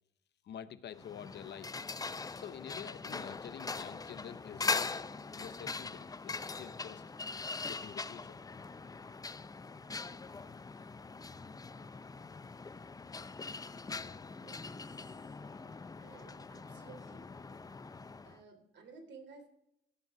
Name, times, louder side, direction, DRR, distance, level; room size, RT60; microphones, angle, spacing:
voice 1, 0.4-1.7 2.3-5.0 5.3-7.0 7.6-8.4, left 9 dB, 60° left, 14 dB, 0.7 m, -48 dB
sound 1, 0.9-18.4, left 4 dB, 20° left, 0.5 m, -41 dB
voice 2, 14.3-14.8 16.0-17.2 18.2-19.5, right 4 dB, 65° right, 4 dB, 3.1 m, -55 dB
16.0 x 5.3 x 5.9 m, 0.77 s
cardioid pair, 90°, 20 cm